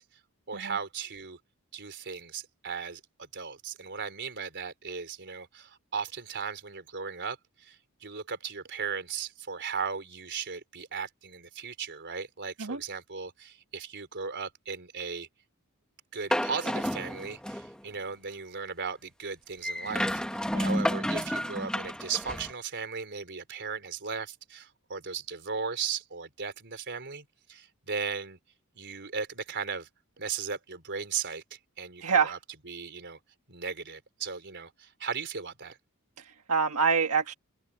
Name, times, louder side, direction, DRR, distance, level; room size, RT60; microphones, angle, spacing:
voice 1, 0.5-1.4 1.7-7.4 7.6-7.8 8.0-15.3 16.1-28.4 28.8-29.9 30.2-31.4 31.8-32.4 32.7-33.2 33.5-35.8, right 5 dB, 55° right, 4.0 m, -37 dB
sound 1, 16.3-17.8 19.6-22.5, equal, 5° left, 1.2 m, -31 dB
voice 2, 32.0-32.4 36.2-37.3, right 5 dB, 80° right, 1.6 m, -27 dB
open air
head